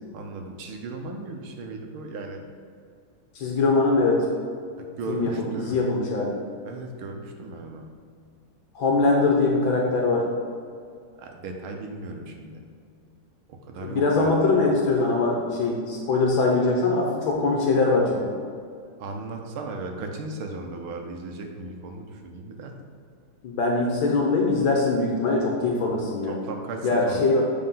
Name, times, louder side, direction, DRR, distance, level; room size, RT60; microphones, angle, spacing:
voice 1, 0.1-2.4 4.8-5.8 6.6-7.9 11.2-12.6 13.5-14.5 19.0-22.7 26.2-27.4, right 3 dB, 80° right, 3 dB, 1.8 m, -36 dB
voice 2, 3.3-4.2 5.1-6.4 8.7-10.3 13.8-18.3 23.4-26.3 26.8-27.4, left 3 dB, 75° left, -1 dB, 1.7 m, -22 dB
7.7 x 4.5 x 5.5 m, 2.2 s
omnidirectional pair, 2.3 m